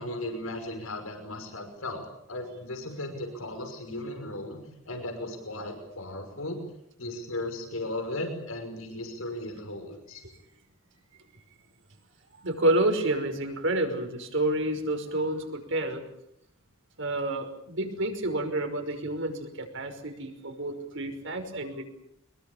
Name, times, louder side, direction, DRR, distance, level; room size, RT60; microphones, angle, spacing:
voice 1, 0.0-4.6 4.9-6.6 7.0-10.2, left 1 dB, 90° left, 6 dB, 5.8 m, -36 dB
voice 2, 12.4-16.1 17.0-21.8, right 1 dB, 65° right, 5 dB, 5.5 m, -29 dB
24.5 x 22.0 x 8.7 m, 0.74 s
head